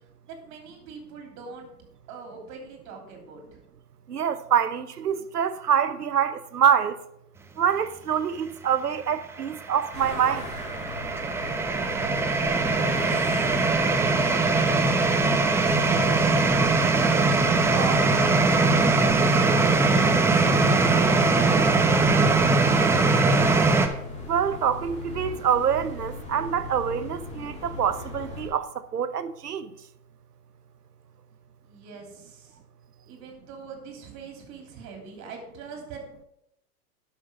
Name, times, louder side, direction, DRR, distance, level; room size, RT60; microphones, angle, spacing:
voice 1, 0.3-1.7 2.1-3.6 12.6-13.8 14.7-18.0 18.3-23.4 31.6-32.6 33.0-36.3, right 5 dB, 40° right, 3.1 m, -40 dB
voice 2, 4.1-7.0 7.6-10.5 24.3-28.7 28.9-29.7, right 8 dB, 85° right, 0.8 m, -25 dB
sound 1, 9.2-23.9, right 3 dB, 5° right, 0.4 m, -21 dB
sound 2, 9.9-28.5, left 2 dB, 15° left, 3.5 m, -38 dB
12.0 x 6.0 x 5.1 m
hypercardioid pair, 105°, 45 cm